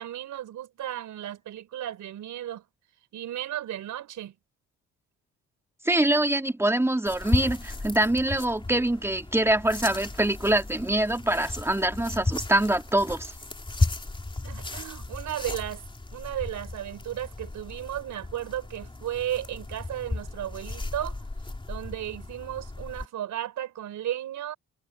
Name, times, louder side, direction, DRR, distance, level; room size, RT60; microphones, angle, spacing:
voice 1, 0.0-2.6 3.1-4.3 14.4-15.8 16.1-21.2 21.7-24.5, right 12 dB, 75° right, 5.0 m, -34 dB
voice 2, 5.8-13.3, right 1 dB, 10° right, 2.0 m, -24 dB
sound 1, 7.1-23.1, left 2 dB, 15° left, 3.7 m, -34 dB
cardioid pair, 90°, 30 cm